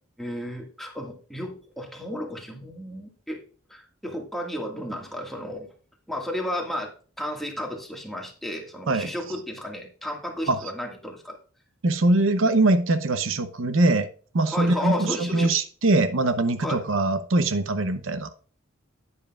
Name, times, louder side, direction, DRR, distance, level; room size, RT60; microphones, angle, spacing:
voice 1, 0.2-3.4 3.7-5.7 6.1-6.9 7.2-11.4 14.5-15.5 16.6-16.8, left 1 dB, ahead, 1.8 m, -33 dB
voice 2, 11.8-14.1 14.3-18.3, right 2 dB, 75° right, 0.7 m, -22 dB
9.9 x 9.6 x 2.4 m
head